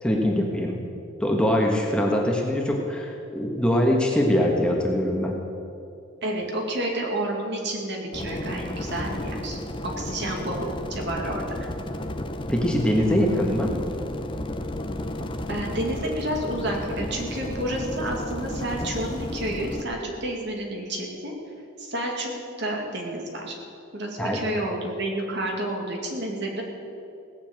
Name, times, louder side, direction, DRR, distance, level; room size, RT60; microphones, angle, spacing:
voice 1, 0.0-0.8 1.2-5.4 12.5-13.8 24.2-24.4, equal, 5° left, 0 dB, 1.4 m, -23 dB
voice 2, 6.2-11.7 15.5-21.3 21.8-22.3 22.6-23.6 23.9-26.6, right 1 dB, 55° right, 1 dB, 2.5 m, -30 dB
sound 1, 8.1-19.8, left 1 dB, 25° left, 0.8 m, -33 dB
17.5 x 7.2 x 8.8 m, 2.6 s
head